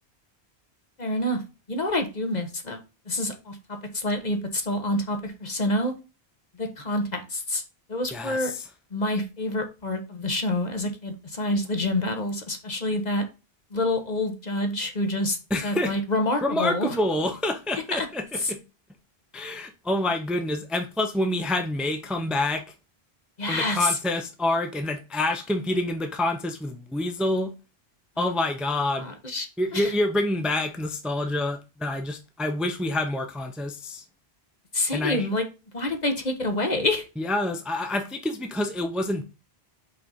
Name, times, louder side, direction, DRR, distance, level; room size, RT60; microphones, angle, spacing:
voice 1, 1.0-1.4 1.7-2.8 3.1-3.6 3.9-5.9 6.6-7.6 7.9-8.5 8.9-13.2 13.7-15.4 15.6-16.9 17.9-18.1 18.4-18.5 23.4-23.9 29.0-29.5 29.7-29.9 34.7-35.4 35.7-37.0, left 1 dB, 45° left, 1.3 m, -27 dB
voice 2, 8.1-8.7 15.5-16.0 16.4-18.6 19.3-22.6 23.5-27.5 28.2-29.1 29.6-34.0 34.9-35.3 37.2-39.2, left 1 dB, ahead, 0.7 m, -27 dB
5.6 x 3.9 x 5.6 m
omnidirectional pair, 1.1 m